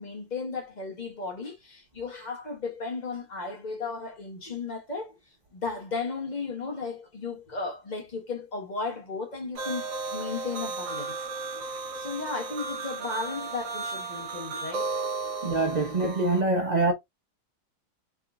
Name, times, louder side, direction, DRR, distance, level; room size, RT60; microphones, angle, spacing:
voice 1, 0.0-5.2 5.5-11.1 12.0-14.9, left 4 dB, 35° left, 0.8 m, -35 dB
sound 1, 9.5-16.4, right 4 dB, 60° right, 0.9 m, -34 dB
voice 2, 15.4-16.9, right 2 dB, 35° right, 0.7 m, -24 dB
4.6 x 2.9 x 2.4 m
omnidirectional pair, 2.0 m